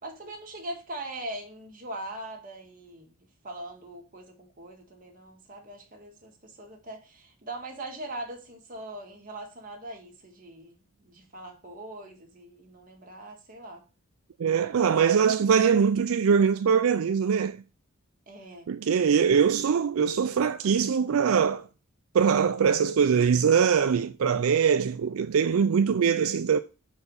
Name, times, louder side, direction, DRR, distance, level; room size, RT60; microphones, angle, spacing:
voice 1, 0.0-3.1 3.4-13.8 18.3-19.4, right 1 dB, 40° right, 1.9 m, -41 dB
voice 2, 14.4-17.6 18.7-21.6 22.1-26.6, right 6 dB, 80° right, 0.4 m, -22 dB
5.4 x 4.8 x 6.3 m
head